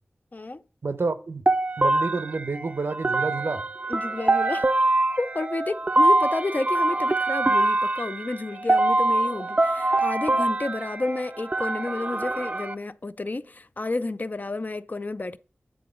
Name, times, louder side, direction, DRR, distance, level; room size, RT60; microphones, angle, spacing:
voice 1, 0.3-0.6 3.9-4.7 5.2-15.4, left 2 dB, 45° left, 0.4 m, -31 dB
voice 2, 0.8-1.4 1.8-3.6, right 3 dB, 75° right, 0.7 m, -29 dB
sound 1, 1.5-12.7, right 2 dB, 35° right, 0.4 m, -24 dB
9.3 x 3.8 x 5.1 m
wide cardioid pair, 50°, 4 cm